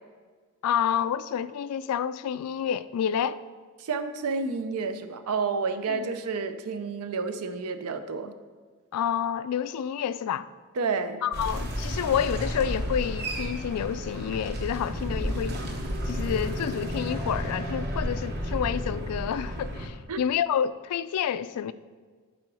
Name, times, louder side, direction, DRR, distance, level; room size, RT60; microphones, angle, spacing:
voice 1, 0.6-3.4 5.9-6.2 8.9-10.5 11.2-15.6 16.1-21.7, left 8 dB, 90° left, 0.3 m, -29 dB
voice 2, 3.8-8.3 10.8-11.2 20.1-20.2, right 4 dB, 80° right, 0.5 m, -30 dB
sound 1, 11.3-19.9, equal, 45° right, 1.0 m, -32 dB
8.4 x 3.8 x 4.8 m
head